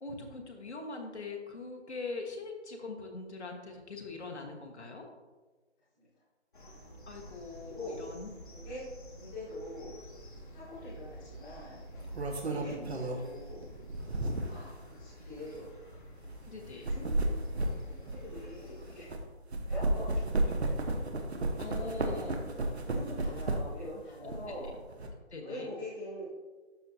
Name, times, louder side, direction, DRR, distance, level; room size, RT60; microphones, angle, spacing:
voice 1, 0.0-5.1 7.1-8.3 12.5-12.8 16.5-16.9 21.6-22.5 24.2-24.3 25.3-25.7, left 3 dB, 70° left, 1 dB, 1.4 m, -42 dB
sound 1, 6.5-19.0, right 1 dB, 45° left, 1.3 m, -49 dB
voice 2, 7.6-8.0 8.5-8.8 9.1-9.9 10.5-11.8 12.4-13.6 14.4-15.7 16.9-17.3 18.0-19.2 19.7-20.2 20.6-20.7 22.8-24.7 25.4-26.3, left 1 dB, 5° left, -13 dB, 1.2 m, -44 dB
sound 2, 10.3-10.5 11.8-14.7 15.4-15.5 16.6-19.2 19.5-23.9 24.2-25.1, right 2 dB, 65° right, 1.1 m, -33 dB
12.0 x 4.4 x 2.7 m, 1.3 s
figure-of-eight pair, 170°, 35 cm